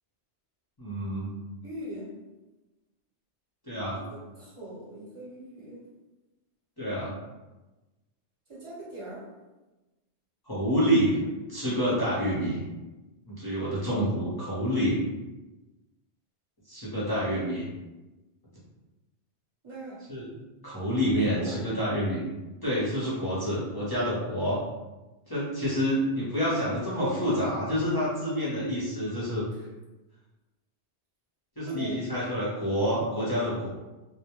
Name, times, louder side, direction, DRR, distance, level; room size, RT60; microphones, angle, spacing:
voice 1, 0.8-1.3 3.7-4.0 6.8-7.1 10.5-11.2 11.5-12.6 13.3-15.0 16.7-17.7 20.1-20.2 20.6-22.3 22.6-24.6 25.3-29.4 31.6-33.7, equal, 25° left, -10 dB, 0.6 m, -28 dB
voice 2, 1.6-2.1 3.9-5.8 8.5-9.3 19.6-20.1 21.3-21.7 31.7-32.1, right 1 dB, 30° right, -7 dB, 0.8 m, -41 dB
2.2 x 2.1 x 2.9 m, 1.1 s
omnidirectional pair, 1.2 m